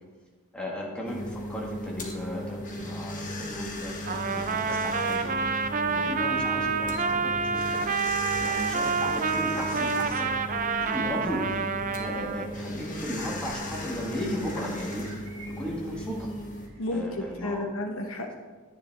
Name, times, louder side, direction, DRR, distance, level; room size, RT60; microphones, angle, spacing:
voice 1, 0.5-5.3 5.9-7.9 8.4-10.3 10.8-11.7 12.0-15.1 15.5-16.3 16.9-17.7, equal, 5° left, -4 dB, 1.8 m, -36 dB
sound 1, 1.0-16.7, left 1 dB, 35° left, 1.4 m, -37 dB
Trumpet, 4.0-12.5, right 5 dB, 35° right, 0.4 m, -28 dB
sound 2, 4.2-17.6, right 3 dB, 75° right, 1.7 m, -53 dB
voice 2, 16.8-18.3, left 1 dB, 70° left, 3 dB, 1.0 m, -32 dB
10.5 x 10.0 x 3.5 m, 1.5 s
head